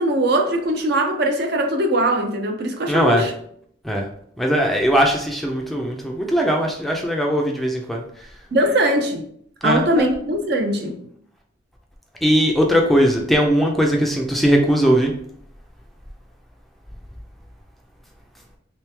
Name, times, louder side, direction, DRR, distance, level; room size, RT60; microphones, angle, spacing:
voice 1, 0.0-3.3 8.5-9.2 9.6-11.0, right 1 dB, 55° right, 3 dB, 0.6 m, -21 dB
voice 2, 2.9-3.3 3.8-4.1 4.4-8.0 9.6-10.1 12.2-15.1, equal, ahead, 0 dB, 0.4 m, -19 dB
3.2 x 3.1 x 3.3 m, 0.66 s
head